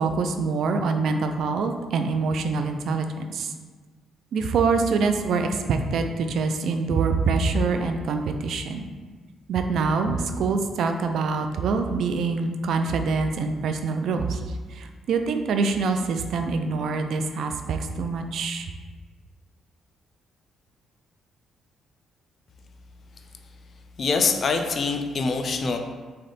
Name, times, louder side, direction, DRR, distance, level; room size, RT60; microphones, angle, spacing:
voice 1, 0.0-3.5 4.3-8.9 9.5-14.4 14.7-18.7, right 4 dB, 70° right, 6 dB, 0.4 m, -25 dB
voice 2, 24.0-25.8, left 4 dB, 50° left, 5 dB, 0.5 m, -24 dB
3.7 x 3.3 x 4.1 m, 1.4 s
cardioid pair, 90°, 0 cm